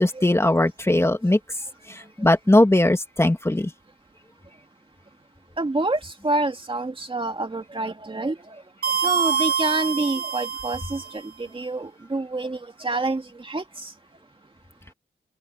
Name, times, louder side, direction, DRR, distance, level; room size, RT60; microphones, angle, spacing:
voice 1, 0.0-1.4 2.2-3.7, left 1 dB, 15° left, 2.4 m, -19 dB
voice 2, 5.6-8.6 9.0-13.9, right 2 dB, 25° right, 2.4 m, -27 dB
sound 1, 8.8-11.2, right 6 dB, 50° right, 4.7 m, -25 dB
open air
wide cardioid pair, 120°, 21 cm